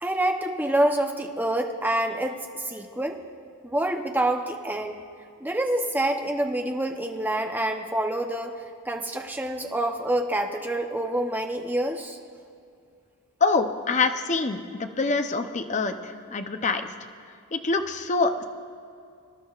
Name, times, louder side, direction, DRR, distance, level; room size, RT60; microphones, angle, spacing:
voice 1, 0.0-3.2 3.6-4.9 5.4-8.6 8.8-12.2, right 1 dB, 10° right, 3 dB, 0.7 m, -27 dB
voice 2, 13.4-16.9 17.5-18.4, left 4 dB, 30° left, 7 dB, 0.6 m, -25 dB
25.0 x 11.5 x 2.4 m, 2.4 s
head